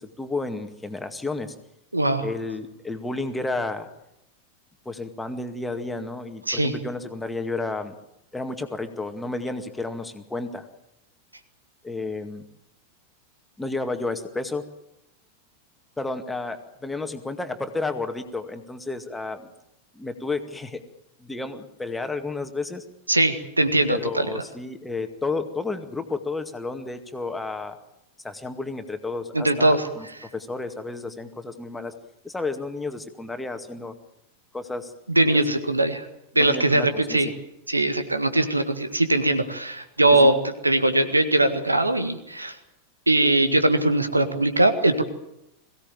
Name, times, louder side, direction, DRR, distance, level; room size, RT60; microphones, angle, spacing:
voice 1, 0.0-1.5 2.2-3.9 4.9-7.9 8.3-10.7 11.8-12.4 13.6-14.6 16.0-19.5 19.9-20.8 21.2-22.8 23.9-27.8 28.2-30.1 30.3-31.9 32.2-33.9 34.5-34.9 35.3-35.4 36.3-37.3 40.1-40.3, left 3 dB, 10° left, 7 dB, 2.1 m, -31 dB
voice 2, 1.9-2.3 6.5-6.7 23.1-24.3 29.3-29.9 35.1-36.1 36.4-37.3 37.7-40.3 40.6-42.6 43.1-45.0, right 2 dB, 85° right, 10 dB, 1.9 m, -21 dB
22.0 x 17.0 x 9.1 m, 0.85 s
figure-of-eight pair, 90°, 0 cm